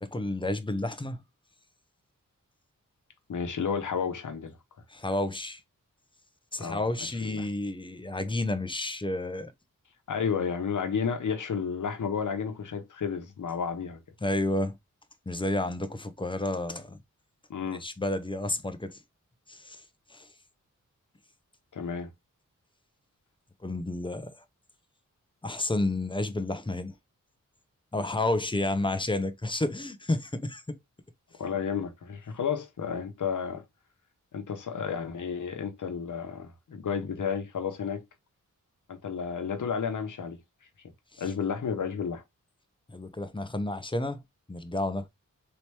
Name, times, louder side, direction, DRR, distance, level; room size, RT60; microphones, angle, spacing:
voice 1, 0.0-1.2 4.9-5.6 6.5-9.5 14.2-14.8 15.3-17.0 17.7-19.0 19.5-19.8 20.1-20.3 23.6-24.3 25.4-26.9 27.9-30.8 41.1-41.2 42.9-44.2 44.5-45.1, left 2 dB, 15° left, 0.7 m, -31 dB
voice 2, 3.3-4.6 6.6-6.8 7.2-7.5 10.1-14.0 17.5-17.8 21.7-22.1 31.4-33.6 34.3-38.0 38.9-40.4 41.2-42.2, left 6 dB, 70° left, 1.0 m, -32 dB
4.3 x 3.0 x 3.3 m
wide cardioid pair, 85°, 31 cm